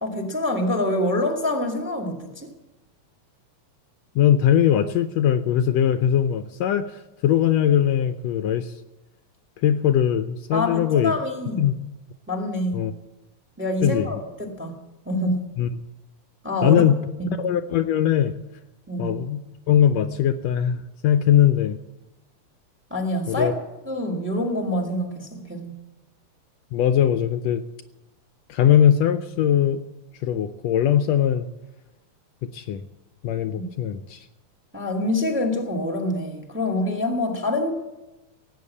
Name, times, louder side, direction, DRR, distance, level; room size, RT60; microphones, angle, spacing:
voice 1, 0.0-2.5 10.5-11.7 12.3-12.9 13.6-14.8 15.0-15.5 16.4-16.8 17.2-17.5 18.9-19.2 22.9-23.6 23.8-25.7 34.7-37.7, left 1 dB, 5° right, 3 dB, 1.4 m, -26 dB
voice 2, 4.2-8.7 9.6-11.1 11.6-11.7 12.7-12.9 13.8-14.1 15.6-15.7 16.6-17.0 17.4-18.3 19.0-19.4 19.7-21.8 23.3-23.5 26.7-27.6 28.5-29.8 30.2-31.5 32.5-32.8 33.2-34.3, left 10 dB, 75° left, 9 dB, 1.7 m, -20 dB
17.5 x 8.5 x 8.4 m, 1.0 s
omnidirectional pair, 3.3 m